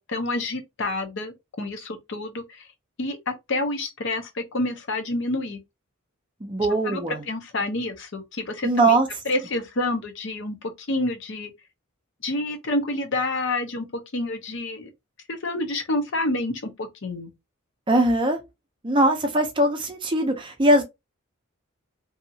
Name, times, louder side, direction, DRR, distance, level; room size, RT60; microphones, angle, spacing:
voice 1, 0.0-2.7 3.0-5.6 6.8-7.0 7.3-9.0 9.3-11.5 12.2-13.9 14.1-14.9 15.3-17.3, left 2 dB, 55° left, 0.7 m, -28 dB
voice 2, 6.4-7.2 8.6-9.1 17.9-18.4 18.8-20.8, right 1 dB, 20° right, 0.5 m, -21 dB
2.7 x 2.4 x 2.7 m
head